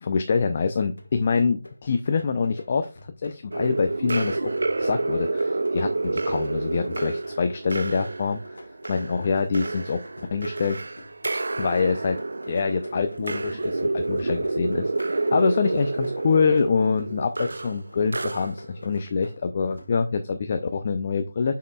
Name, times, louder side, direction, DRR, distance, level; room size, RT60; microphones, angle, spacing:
voice 1, 0.0-2.9 3.2-4.5 4.8-8.6 8.9-10.0 10.3-10.8 11.6-12.2 12.5-21.6, left 5 dB, 40° left, 8 dB, 0.6 m, -25 dB
sound 1, 0.7-20.4, left 1 dB, 85° left, 1.6 m, -48 dB
sound 2, 3.5-18.8, right 2 dB, 70° right, 0.3 m, -29 dB
7.3 x 5.7 x 2.4 m, 0.29 s
figure-of-eight pair, 160°, 0 cm